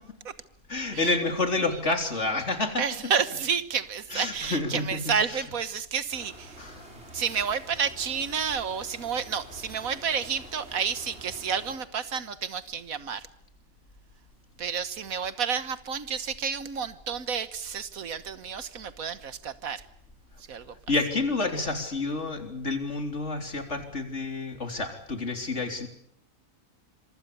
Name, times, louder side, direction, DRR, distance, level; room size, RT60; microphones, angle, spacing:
voice 1, 0.7-2.8 4.1-5.4 6.6-7.0 20.9-25.9, left 3 dB, 55° left, 5 dB, 4.0 m, -29 dB
voice 2, 2.8-6.7 7.1-13.3 14.6-19.8 20.5-20.7, right 6 dB, 75° right, 13 dB, 1.7 m, -30 dB
sound 1, 6.1-11.7, right 1 dB, 50° right, 6.3 m, -47 dB
26.0 x 24.5 x 6.9 m, 0.68 s
omnidirectional pair, 1.5 m